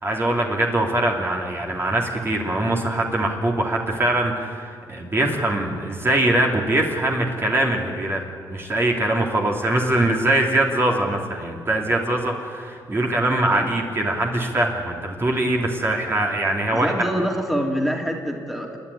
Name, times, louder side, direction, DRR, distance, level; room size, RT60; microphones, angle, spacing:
voice 1, 0.0-8.2 8.5-16.9, right 1 dB, 30° right, 0 dB, 2.8 m, -22 dB
voice 2, 16.7-18.8, equal, ahead, 1 dB, 2.9 m, -25 dB
28.0 x 10.5 x 9.7 m, 2.2 s
cardioid pair, 80°, 8 cm